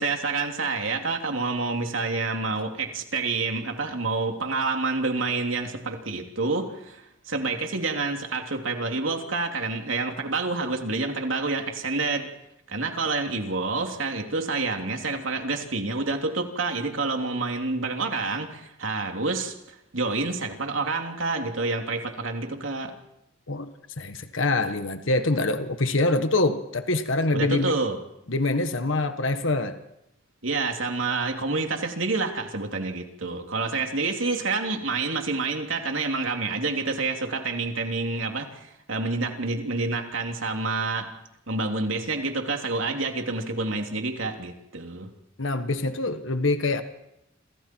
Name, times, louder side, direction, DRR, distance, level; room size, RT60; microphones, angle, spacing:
voice 1, 0.0-12.3 12.7-19.5 19.9-22.9 27.3-28.0 30.4-41.1 41.5-45.1, right 3 dB, 70° right, 3 dB, 3.2 m, -28 dB
voice 2, 23.5-27.8 28.3-29.8 45.4-46.8, left 2 dB, 65° left, 9 dB, 1.5 m, -25 dB
28.5 x 27.0 x 4.6 m, 0.86 s
head